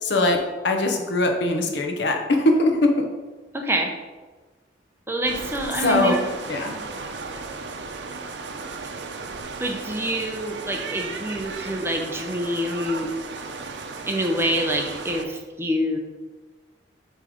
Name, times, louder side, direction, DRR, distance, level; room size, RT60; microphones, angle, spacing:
voice 1, 0.0-3.1 5.8-6.2 6.5-6.8, left 2 dB, 80° left, 3 dB, 1.0 m, -21 dB
voice 2, 3.5-3.9 5.1-6.2 9.6-13.1 14.1-16.0, equal, 15° right, 2 dB, 0.7 m, -26 dB
sound 1, 5.3-15.2, right 4 dB, 80° right, 0.7 m, -35 dB
7.4 x 3.3 x 5.0 m, 1.3 s
head